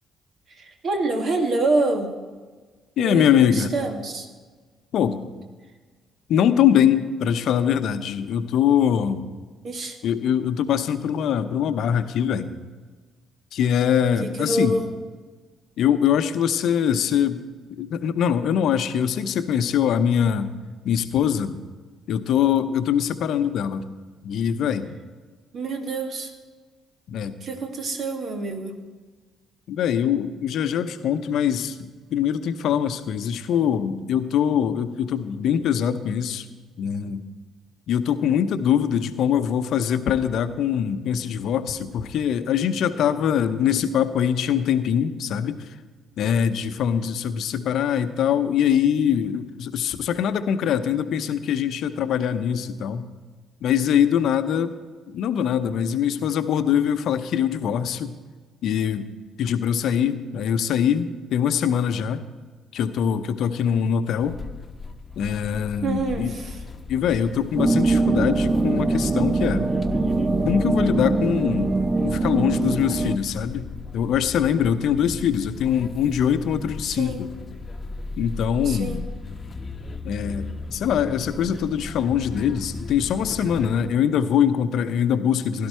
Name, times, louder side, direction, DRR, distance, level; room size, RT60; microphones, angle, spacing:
voice 1, 0.5-2.2 3.0-4.3 9.6-10.0 14.2-14.9 25.5-26.3 27.4-28.7 65.8-66.6 76.8-77.2 78.6-79.0, right 2 dB, 55° right, 4 dB, 2.1 m, -26 dB
voice 2, 3.0-3.7 4.9-5.2 6.3-9.2 10.0-12.5 13.5-14.8 15.8-17.4 17.7-20.5 20.8-21.6 22.1-23.8 24.2-24.9 27.1-27.3 29.7-31.8 32.1-36.5 36.8-37.2 37.9-45.7 46.2-53.0 53.6-54.7 55.1-58.1 58.6-59.1 59.4-62.2 62.7-64.4 65.2-66.3 66.9-69.7 70.5-71.8 72.0-77.3 78.2-79.0 80.0-85.7, left 8 dB, 65° left, 11 dB, 0.8 m, -23 dB
sound 1, 64.2-83.9, left 3 dB, 40° left, 1.0 m, -37 dB
sound 2, 67.6-73.2, right 3 dB, 30° right, 0.9 m, -22 dB
16.5 x 11.5 x 4.5 m, 1.4 s
hypercardioid pair, 45°, 0 cm